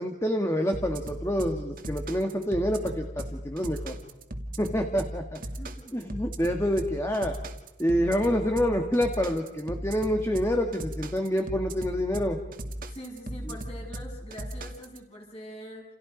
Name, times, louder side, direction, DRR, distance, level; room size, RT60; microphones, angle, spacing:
voice 1, 0.0-4.0 4.6-5.4 5.9-7.4 7.8-12.4, equal, 15° left, 3 dB, 1.9 m, -27 dB
sound 1, 0.7-15.0, right 1 dB, 45° right, 2.3 m, -37 dB
voice 2, 5.4-6.0 12.9-15.8, equal, 30° left, -1 dB, 7.5 m, -44 dB
29.5 x 29.5 x 5.3 m, 0.88 s
head